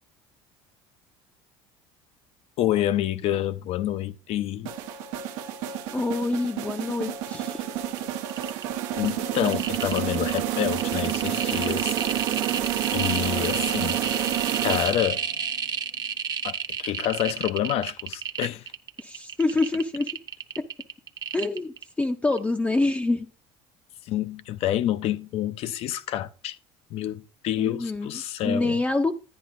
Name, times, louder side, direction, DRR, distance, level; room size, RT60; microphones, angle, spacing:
voice 1, 2.6-4.7 9.0-11.9 12.9-14.0 14.6-15.2 16.4-18.6 24.1-26.6 26.9-28.8, left 12 dB, 60° left, 0.6 m, -28 dB
sound 1, 4.6-15.3, right 11 dB, 75° right, 0.9 m, -29 dB
voice 2, 5.9-7.6 19.0-20.1 20.6-20.7 21.3-23.3 27.6-28.1 28.4-29.1, left 2 dB, 10° left, 0.6 m, -26 dB
sound 2, 8.3-8.6 9.0-22.0 22.3-22.4, right 6 dB, 35° right, 0.8 m, -31 dB
10.5 x 10.0 x 2.5 m
supercardioid pair, 100°, 12 cm